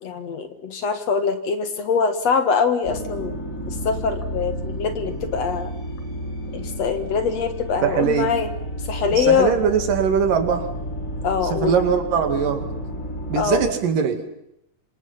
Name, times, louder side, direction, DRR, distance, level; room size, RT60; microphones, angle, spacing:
voice 1, 0.0-3.4 3.7-5.7 6.5-8.5 8.9-9.5 11.2-11.8 13.4-13.6, left 6 dB, 55° left, 8 dB, 2.6 m, -23 dB
sound 1, 2.8-13.7, equal, 20° left, 4.5 m, -31 dB
voice 2, 7.8-8.3 9.2-10.7 11.5-12.7 13.3-14.4, right 7 dB, 80° right, 6 dB, 4.0 m, -21 dB
26.5 x 26.0 x 5.7 m, 0.80 s
omnidirectional pair, 3.8 m